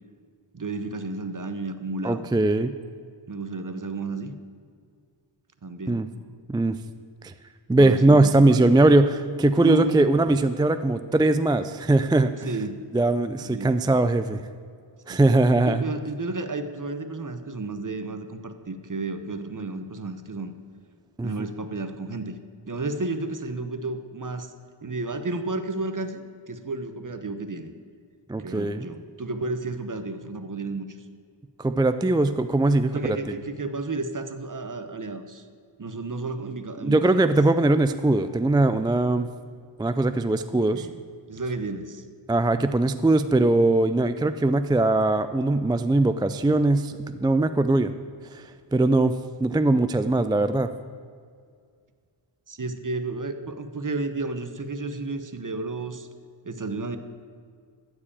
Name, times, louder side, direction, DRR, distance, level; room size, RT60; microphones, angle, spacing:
voice 1, 0.5-2.2 3.3-4.3 5.6-6.1 7.7-8.7 9.6-10.0 12.4-12.8 13.4-13.8 15.1-15.2 15.6-20.5 21.2-22.4 22.7-24.5 24.8-26.2 26.5-27.7 28.4-31.0 32.9-35.4 35.8-37.2 40.5-41.0 41.3-42.0 52.5-56.1 56.4-57.0, right 3 dB, 40° right, 9 dB, 0.9 m, -32 dB
voice 2, 2.0-2.7 5.9-6.1 6.5-6.8 7.2-7.3 7.7-12.5 12.9-14.4 15.1-15.8 21.2-21.3 28.3-28.9 31.6-33.2 36.8-39.3 39.8-40.9 42.3-47.9 48.3-49.1 49.4-50.7, right 2 dB, 10° right, 11 dB, 0.3 m, -21 dB
13.5 x 4.8 x 8.7 m, 2.1 s
wide cardioid pair, 45°, 47 cm